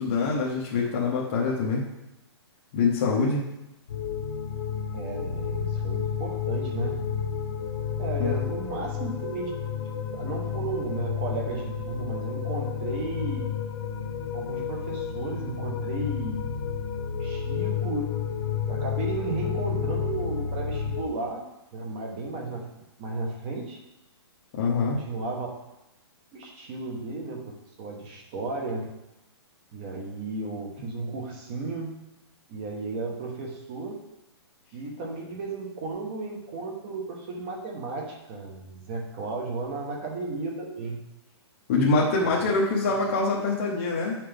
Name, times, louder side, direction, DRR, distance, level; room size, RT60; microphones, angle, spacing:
voice 1, 0.0-1.8 2.7-3.4 8.2-8.4 24.5-25.0 41.7-44.2, left 3 dB, 25° left, -4 dB, 1.0 m, -24 dB
sound 1, 3.9-21.1, left 7 dB, 65° left, 0.8 m, -31 dB
voice 2, 4.9-7.0 8.0-9.5 10.1-13.5 14.3-16.5 17.2-18.1 18.7-21.4 21.7-23.8 24.8-25.5 26.3-28.8 29.7-32.0 32.5-34.0 34.7-41.0 42.2-42.5 42.8-42.9, right 3 dB, 20° right, 0 dB, 1.1 m, -34 dB
8.5 x 5.9 x 3.4 m, 0.91 s
hypercardioid pair, 180°, 14 cm